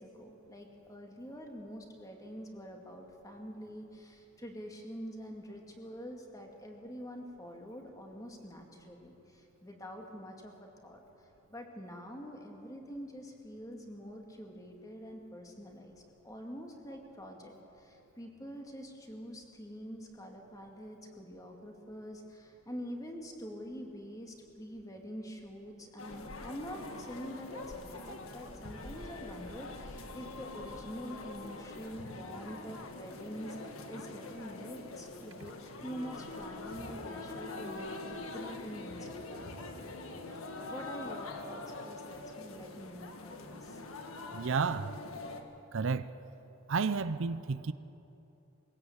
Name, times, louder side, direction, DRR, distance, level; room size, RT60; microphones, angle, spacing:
voice 1, 0.0-11.0 11.5-43.8, equal, 15° left, 2.4 m, -46 dB
sound 1, 26.0-45.4, left 2 dB, 80° left, 1.8 m, -44 dB
voice 2, 44.3-44.9 45.7-46.1 46.7-47.7, right 5 dB, 65° right, 0.6 m, -31 dB
22.0 x 16.5 x 8.1 m
head